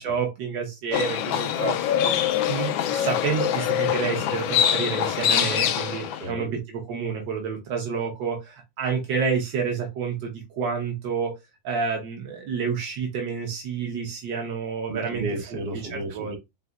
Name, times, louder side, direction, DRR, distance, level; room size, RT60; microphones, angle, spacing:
voice 1, 0.0-1.9 2.5-11.4 11.6-15.2 15.9-16.3, right 6 dB, 75° right, 1.7 m, -29 dB
Livestock farm animals working animals, 0.9-6.2, left 9 dB, 90° left, 1.4 m, -24 dB
voice 2, 6.2-6.6 14.9-16.4, right 2 dB, 60° right, 1.8 m, -33 dB
4.2 x 4.0 x 2.3 m
omnidirectional pair, 2.1 m